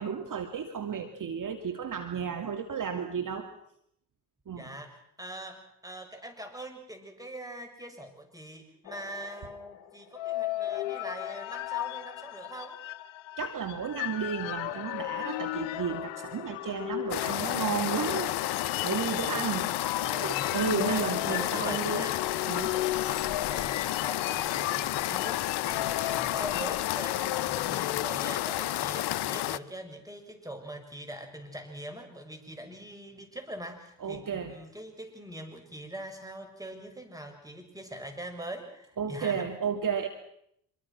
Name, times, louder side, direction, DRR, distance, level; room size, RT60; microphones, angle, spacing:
voice 1, 0.0-3.5 4.5-4.7 13.4-18.5 18.8-19.7 20.0-22.1 22.5-22.7 34.0-34.5 39.0-40.1, right 6 dB, 40° right, 6 dB, 2.4 m, -33 dB
voice 2, 4.5-12.8 19.3-22.2 23.0-39.4, right 1 dB, 5° right, 5 dB, 6.7 m, -43 dB
sound 1, 8.9-28.0, left 15 dB, 75° left, 1.2 m, -36 dB
sound 2, 17.1-29.6, left 14 dB, 55° left, 0.9 m, -31 dB
26.0 x 23.5 x 6.0 m, 0.72 s
hypercardioid pair, 65°, 46 cm